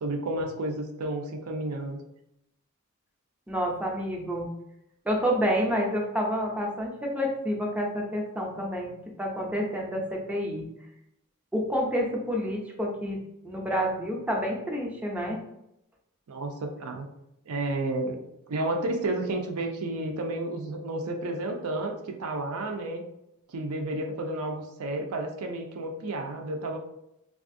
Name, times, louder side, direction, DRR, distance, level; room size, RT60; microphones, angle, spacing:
voice 1, 0.0-2.0 16.3-17.1 17.5-23.0 23.5-26.8, right 2 dB, 75° right, 4 dB, 0.5 m, -31 dB
voice 2, 3.5-4.5 5.1-8.9 9.2-10.7 11.5-15.4, equal, 5° right, -1 dB, 0.4 m, -29 dB
3.4 x 2.3 x 2.5 m, 0.83 s
head